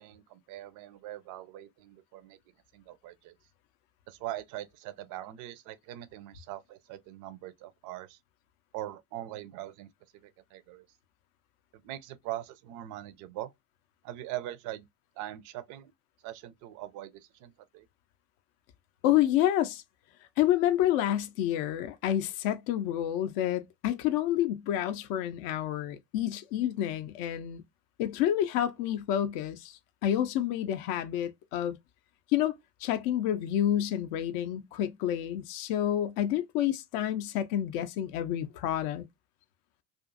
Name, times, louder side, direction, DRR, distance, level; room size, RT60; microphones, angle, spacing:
voice 1, 0.0-2.4 2.7-3.3 4.1-8.2 8.7-9.9 10.2-10.8 11.8-13.5 14.0-14.9 15.2-15.9 16.2-17.9, right 14 dB, 40° right, 0.4 m, -41 dB
voice 2, 19.0-19.8 20.4-27.6 28.0-31.8 32.3-39.0, left 11 dB, 45° left, 0.5 m, -29 dB
2.5 x 2.4 x 2.3 m
hypercardioid pair, 75°, 50 cm